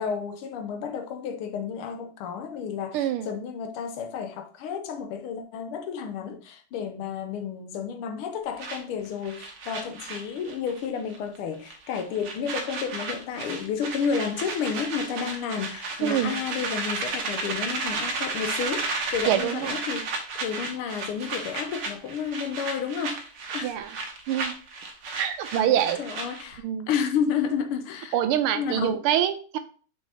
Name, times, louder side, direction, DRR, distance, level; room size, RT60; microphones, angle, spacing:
voice 1, 0.0-23.7 25.5-28.2 28.5-28.9, left 7 dB, 90° left, 1.7 m, -31 dB
voice 2, 2.9-3.3 16.0-16.4 19.3-19.7 23.6-23.9 24.3-24.5 25.2-26.0 26.6-26.9 28.1-29.6, right 10 dB, 85° right, 1.5 m, -25 dB
sound 1, 8.6-10.9 11.1-11.4 11.7-26.6, right 3 dB, 60° right, 1.5 m, -33 dB
6.0 x 5.7 x 2.8 m
omnidirectional pair, 2.4 m